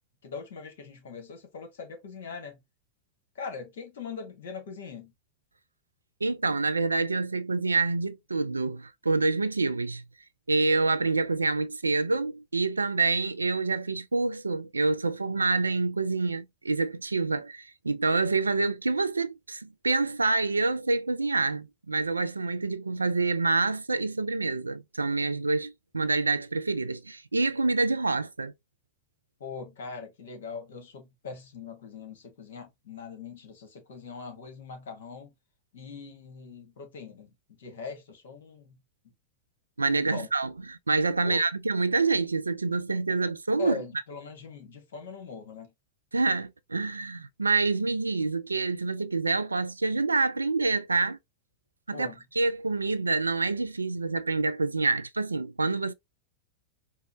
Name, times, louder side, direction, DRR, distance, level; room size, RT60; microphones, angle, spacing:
voice 1, 0.2-2.6 3.3-5.1 29.4-35.3 35.7-38.8 39.9-40.3 41.2-41.4 43.6-45.7 51.9-52.2, left 5 dB, 60° left, 1.4 m, -41 dB
voice 2, 6.2-10.0 10.5-28.5 39.8-43.8 46.1-51.2 51.9-52.1 52.4-55.9, right 3 dB, 80° right, 0.3 m, -27 dB
4.5 x 2.1 x 2.7 m
figure-of-eight pair, 90°, 0 cm